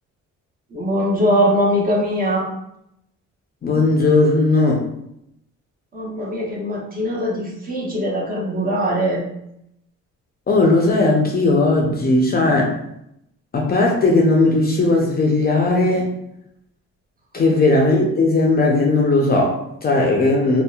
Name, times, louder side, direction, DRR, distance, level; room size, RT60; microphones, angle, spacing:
voice 1, 0.7-2.5 5.9-9.2 12.3-12.6 17.4-17.6, equal, 30° right, -2 dB, 0.7 m, -21 dB
voice 2, 3.6-4.8 10.5-12.7 13.5-16.2 17.3-20.6, left 2 dB, 30° left, 0 dB, 0.4 m, -17 dB
2.7 x 2.1 x 2.3 m, 0.78 s
cardioid pair, 90°, 30 cm